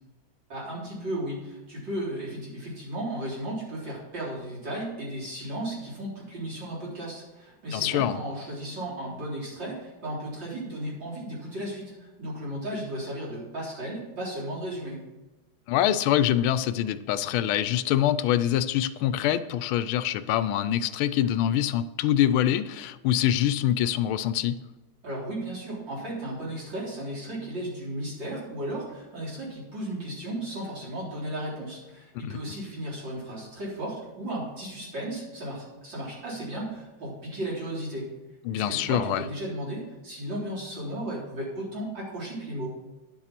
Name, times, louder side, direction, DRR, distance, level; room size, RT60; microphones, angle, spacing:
voice 1, 0.5-15.0 25.0-38.1 38.5-42.7, right 1 dB, 60° right, -6 dB, 4.4 m, -35 dB
voice 2, 7.7-8.2 15.7-24.6 32.3-32.4 38.4-39.2, left 11 dB, 85° left, 13 dB, 1.4 m, -25 dB
10.5 x 7.0 x 5.9 m, 1.1 s
omnidirectional pair, 2.2 m